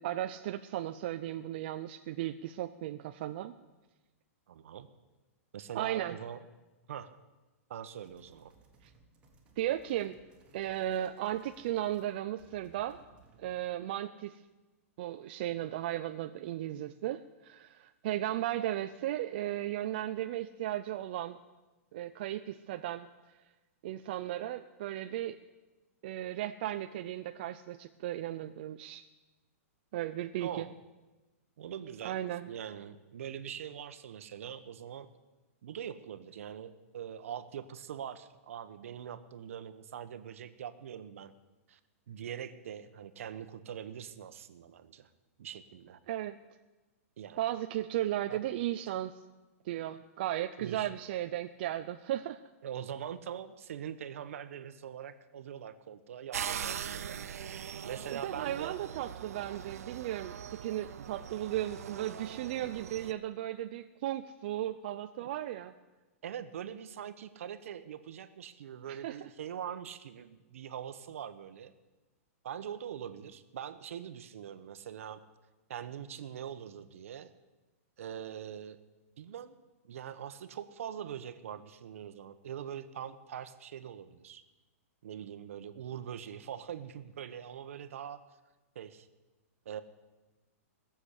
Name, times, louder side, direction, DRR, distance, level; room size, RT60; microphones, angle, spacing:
voice 1, 0.0-3.5 5.7-6.2 8.8-8.9 9.6-10.2 10.5-13.0 13.4-14.4 15.0-21.4 21.9-23.1 23.8-25.4 26.0-29.0 29.9-30.7 32.0-32.5 46.1-46.4 47.4-49.1 49.7-52.4 58.1-65.7 68.9-69.3, right 13 dB, 40° right, 8 dB, 0.5 m, -35 dB
voice 2, 4.5-4.9 5.5-6.4 6.9-7.2 7.7-8.5 30.4-30.7 31.6-32.2 32.5-35.1 35.6-41.3 41.7-41.8 42.1-45.1 45.4-46.0 47.2-47.4 48.3-48.4 50.6-51.0 52.6-57.2 57.8-58.8 61.0-61.1 66.2-71.7 72.4-75.2 75.7-77.3 78.0-78.8 79.2-79.5 79.8-84.4 85.0-88.2 88.7-89.1 89.6-89.8, right 9 dB, 65° right, 11 dB, 1.1 m, -43 dB
sound 1, 7.9-12.1 12.4-13.7, right 3 dB, 15° right, 1.8 m, -63 dB
sound 2, 56.3-63.1, right 9 dB, 80° right, 0.7 m, -41 dB
19.0 x 7.2 x 8.2 m, 1.2 s
hypercardioid pair, 165°, 8 cm